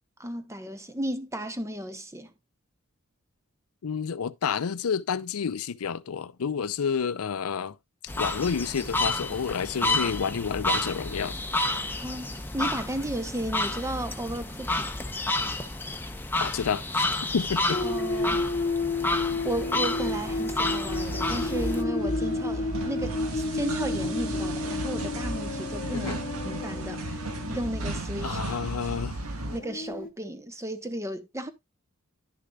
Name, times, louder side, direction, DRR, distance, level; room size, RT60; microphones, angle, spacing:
voice 1, 0.2-2.3 12.0-14.9 17.8-18.5 19.4-26.1 26.4-27.2 27.5-28.4 29.5-31.5, right 1 dB, 15° right, 1.0 m, -34 dB
voice 2, 3.8-7.8 8.2-11.4 16.4-17.0 17.3-17.8 25.9-26.2 28.2-29.2, left 6 dB, 85° left, 0.5 m, -29 dB
sound 1, 8.1-21.8, left 2 dB, 10° left, 0.8 m, -30 dB
sound 2, 17.7-28.0 29.4-30.1, left 3 dB, 40° left, 0.8 m, -31 dB
sound 3, 20.9-29.6, right 2 dB, 90° right, 1.6 m, -34 dB
11.0 x 6.7 x 2.3 m
head